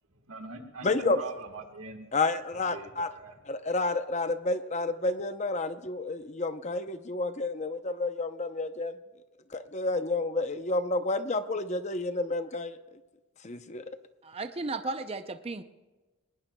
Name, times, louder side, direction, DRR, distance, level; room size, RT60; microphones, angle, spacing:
voice 1, 0.3-2.1 2.5-3.4, right 3 dB, 70° right, 4 dB, 1.6 m, -42 dB
voice 2, 0.8-1.2 2.1-3.1 3.5-8.9 9.5-13.0 13.4-13.8, left 2 dB, 30° left, 10 dB, 0.7 m, -30 dB
voice 3, 14.2-15.6, right 3 dB, 25° right, 9 dB, 0.5 m, -35 dB
21.0 x 19.0 x 2.3 m, 1.2 s
head